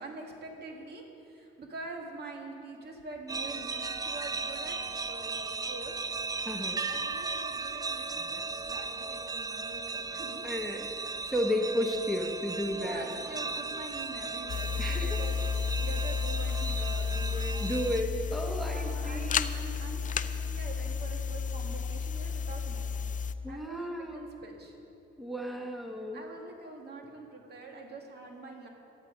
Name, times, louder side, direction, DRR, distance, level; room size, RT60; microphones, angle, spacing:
voice 1, 0.0-4.8 5.1-6.0 6.9-8.4 8.7-10.5 12.7-15.4 15.8-17.6 18.6-19.3 19.5-23.0 23.5-24.8 26.1-28.7, right 2 dB, 55° right, 2 dB, 2.0 m, -45 dB
sound 1, 3.3-18.0, right 4 dB, 20° right, 0.4 m, -36 dB
voice 2, 6.4-6.8 10.4-10.9 11.2-13.1 14.8-15.2 17.6-19.5 23.4-24.3 25.2-26.2, equal, ahead, 2 dB, 1.1 m, -33 dB
sound 2, 14.5-23.3, left 6 dB, 40° left, 0.5 m, -32 dB
15.0 x 9.6 x 5.1 m, 2.8 s
cardioid pair, 90°, 20 cm